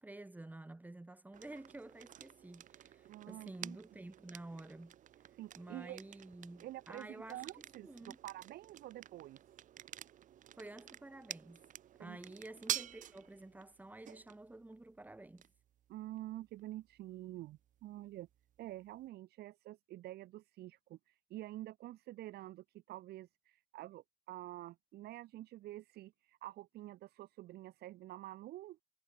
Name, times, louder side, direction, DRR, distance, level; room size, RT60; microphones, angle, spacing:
voice 1, 0.0-4.9 5.6-7.5 7.8-8.2 10.6-11.6 12.0-15.5, right 2 dB, 10° right, 2.1 m, -51 dB
sound 1, 1.3-19.1, right 11 dB, 50° right, 0.7 m, -50 dB
voice 2, 3.0-3.8 5.3-6.0 6.6-7.9 8.2-9.4 12.0-12.2 15.9-18.3 18.6-28.8, right 15 dB, 70° right, 1.2 m, -48 dB
cardioid pair, 110°, 17 cm